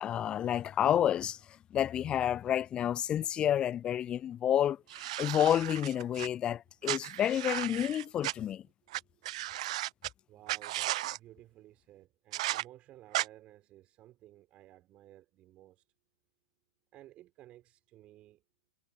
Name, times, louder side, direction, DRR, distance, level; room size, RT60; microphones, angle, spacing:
voice 1, 0.0-1.4 1.7-8.6, left 10 dB, 20° left, 0.4 m, -30 dB
sound 1, 4.9-6.3 6.8-8.3 8.9-9.0 9.2-10.1 10.5-11.2 12.3-12.6 13.1-13.3, right 16 dB, 50° right, 0.7 m, -35 dB
voice 2, 8.8-9.8 10.3-15.9 16.9-18.4, right 14 dB, 30° right, 3.9 m, -56 dB
figure-of-eight pair, 110°, 4 cm